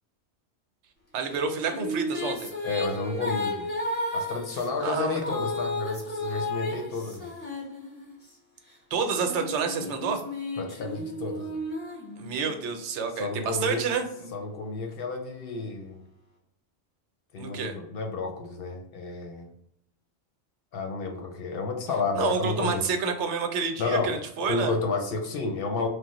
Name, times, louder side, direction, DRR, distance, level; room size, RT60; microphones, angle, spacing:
voice 1, 1.1-2.5 4.8-5.2 8.9-10.2 12.2-14.3 17.4-17.7 22.2-24.7, right 5 dB, 85° right, 6 dB, 0.9 m, -29 dB
sound 1, 1.3-8.3 8.9-12.7, left 1 dB, 10° left, 0.8 m, -33 dB
voice 2, 2.6-3.7 4.1-7.3 9.8-9.9 10.6-11.6 13.1-13.8 14.3-16.0 17.3-19.5 20.7-22.9 23.8-25.9, left 3 dB, 65° left, 3 dB, 0.7 m, -31 dB
3.1 x 2.0 x 2.9 m, 0.78 s
omnidirectional pair, 1.2 m